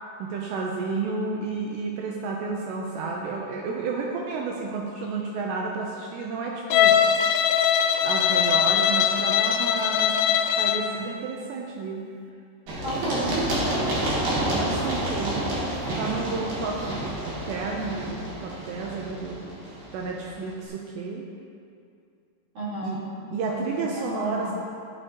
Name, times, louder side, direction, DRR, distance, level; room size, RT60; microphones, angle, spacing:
voice 1, 0.2-7.0 8.0-10.1 10.6-12.0 14.5-15.6 16.0-19.6 19.9-21.2 22.8-23.0 23.3-24.5, right 4 dB, 80° right, -1 dB, 2.7 m, -31 dB
Bowed string instrument, 6.7-10.9, left 8 dB, 85° left, 2.4 m, -21 dB
Run, 12.7-20.3, right 1 dB, 65° right, 2.6 m, -29 dB
voice 2, 12.8-14.0 22.5-23.0 23.8-24.5, right 1 dB, 50° right, -8 dB, 2.2 m, -32 dB
13.5 x 6.6 x 2.9 m, 2.4 s
omnidirectional pair, 5.3 m